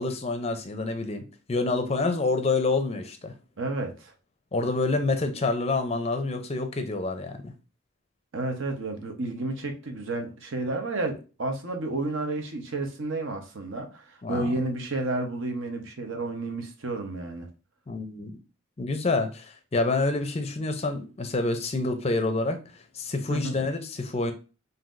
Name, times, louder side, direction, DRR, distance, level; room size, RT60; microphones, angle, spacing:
voice 1, 0.0-3.3 4.5-7.5 14.2-14.5 17.9-18.4 18.8-24.3, left 3 dB, 30° left, 0.5 m, -27 dB
voice 2, 3.6-4.1 8.3-17.5 23.3-23.6, right 2 dB, 70° right, 0.8 m, -31 dB
5.6 x 2.7 x 2.5 m
head